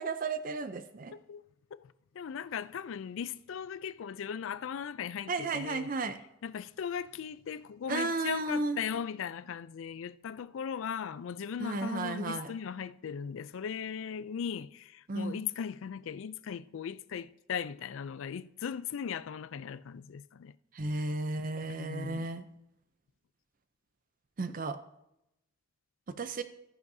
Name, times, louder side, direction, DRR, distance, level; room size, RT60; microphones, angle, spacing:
voice 1, 0.0-1.1 5.3-6.2 7.9-8.8 11.6-12.5 15.1-15.4 20.7-22.4 24.4-24.8 26.2-26.4, right 3 dB, 40° right, 0.5 m, -33 dB
voice 2, 1.1-1.4 1.8-5.9 6.4-20.6 21.7-22.3, left 7 dB, 70° left, 0.4 m, -38 dB
13.0 x 10.0 x 2.7 m
head